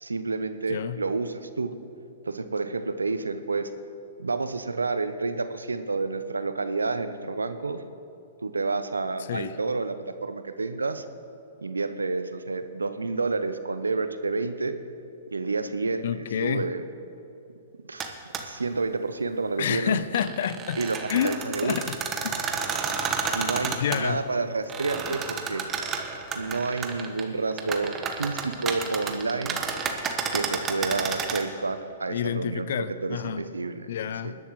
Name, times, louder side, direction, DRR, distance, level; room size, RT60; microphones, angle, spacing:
voice 1, 0.0-1.7 2.3-3.7 4.2-7.8 8.4-11.0 11.6-14.8 15.3-16.8 17.9-18.1 18.4-20.0 20.8-21.0 21.2-21.8 23.3-25.6 26.3-29.6 30.3-33.9 34.2-34.3, right 3 dB, 90° right, 11 dB, 0.7 m, -29 dB
voice 2, 16.0-16.7 19.6-20.8 21.1-21.3 21.6-22.0 22.2-22.4 23.6-24.2 32.1-33.4 33.9-34.4, left 9 dB, 65° left, 14 dB, 0.5 m, -28 dB
sound 1, 18.0-18.1 18.3-18.4 19.9-24.0 24.7-27.2 27.5-31.4, right 6 dB, 25° right, 1.2 m, -31 dB
20.5 x 11.0 x 3.1 m, 2.8 s
hypercardioid pair, 115°, 0 cm